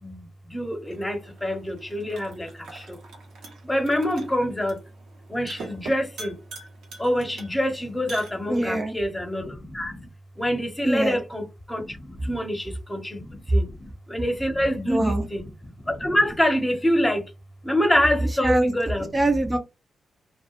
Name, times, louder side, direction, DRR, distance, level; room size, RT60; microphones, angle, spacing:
voice 1, 0.0-3.0 3.6-4.8 5.3-6.4 7.0-10.0 10.4-15.4 15.9-17.2 17.6-19.1, equal, 15° left, 0.8 m, -26 dB
sound 1, 0.8-8.9, right 3 dB, 80° right, 0.8 m, -44 dB
voice 2, 8.5-9.0 10.8-11.2 14.9-15.2 18.3-18.7 19.1-19.6, right 1 dB, 25° right, 0.5 m, -23 dB
2.3 x 2.1 x 2.9 m
supercardioid pair, 50°, 0 cm